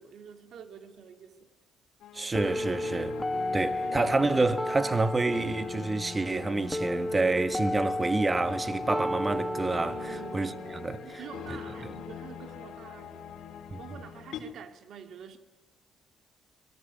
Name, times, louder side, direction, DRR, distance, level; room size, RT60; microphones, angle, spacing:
voice 1, 0.0-1.5 10.0-13.4 13.8-15.4, right 7 dB, 70° right, 2.7 m, -47 dB
sound 1, 2.0-14.4, left 6 dB, 80° left, 3.2 m, -42 dB
voice 2, 2.1-3.2 3.5-11.0 11.8-11.9 13.7-13.8, right 3 dB, 25° right, 1.6 m, -28 dB
sound 2, 2.4-12.4, left 1 dB, 5° left, 1.4 m, -34 dB
23.5 x 19.5 x 9.4 m
cardioid pair, 90°, 0 cm